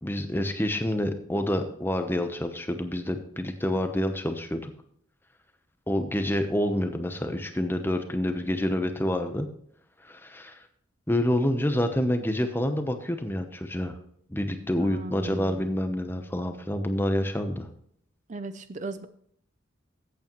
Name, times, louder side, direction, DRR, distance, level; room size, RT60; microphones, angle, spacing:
voice 1, 0.0-4.7 5.9-9.5 10.1-10.6 11.1-14.0 14.3-17.7, left 1 dB, 10° left, 7 dB, 0.9 m, -28 dB
voice 2, 14.8-15.7 18.3-19.1, right 3 dB, 35° right, 11 dB, 0.5 m, -37 dB
14.5 x 8.4 x 3.1 m, 0.66 s
head